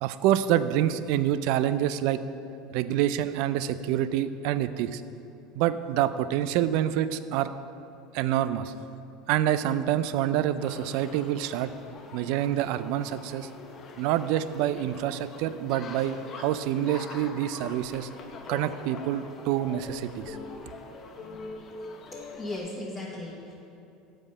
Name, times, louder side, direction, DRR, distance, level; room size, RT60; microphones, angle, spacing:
voice 1, 0.0-2.2 2.7-5.0 5.6-7.5 8.1-8.7 9.3-11.7 12.1-13.5 14.0-18.1 18.5-20.4, right 11 dB, 70° right, 13 dB, 0.3 m, -27 dB
sound 1, 10.6-22.6, left 3 dB, 40° left, 0.8 m, -44 dB
voice 2, 22.1-23.5, left 2 dB, 15° left, -5 dB, 1.2 m, -37 dB
7.5 x 5.0 x 5.3 m, 2.9 s
supercardioid pair, 105°, 0 cm